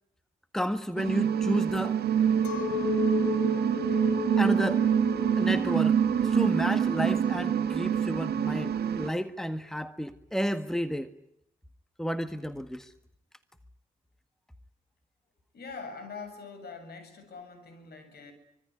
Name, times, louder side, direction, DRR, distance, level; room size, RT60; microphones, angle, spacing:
voice 1, 0.5-2.0 4.4-4.8 5.4-11.1 12.0-12.9, equal, ahead, 11 dB, 1.6 m, -31 dB
sound 1, 1.0-9.1, right 8 dB, 55° right, 1.9 m, -26 dB
Chink clink, 2.4-7.9, left 11 dB, 80° left, 2.0 m, -35 dB
voice 2, 15.5-18.3, left 4 dB, 55° left, 9 dB, 7.7 m, -43 dB
25.5 x 23.5 x 9.7 m, 0.78 s
hypercardioid pair, 45°, 19 cm